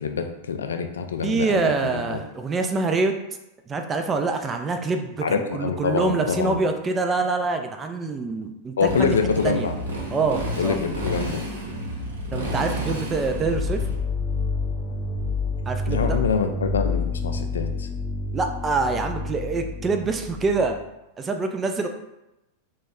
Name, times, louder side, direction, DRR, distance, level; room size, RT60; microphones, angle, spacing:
voice 1, 0.0-2.2 5.2-6.6 8.8-9.8 10.6-11.5 15.9-17.9, left 5 dB, 70° left, 6 dB, 0.3 m, -25 dB
voice 2, 1.2-3.1 3.7-9.2 9.4-9.7 10.1-10.8 12.3-13.8 15.7-16.2 18.3-20.8 21.2-21.9, right 3 dB, 20° right, 5 dB, 0.4 m, -25 dB
Motorcycle, 8.9-14.0, equal, 65° right, 0.9 m, -30 dB
sound 1, 13.1-20.8, left 3 dB, 35° left, 0.7 m, -28 dB
2.9 x 2.3 x 3.5 m, 0.92 s
figure-of-eight pair, 90°, 0 cm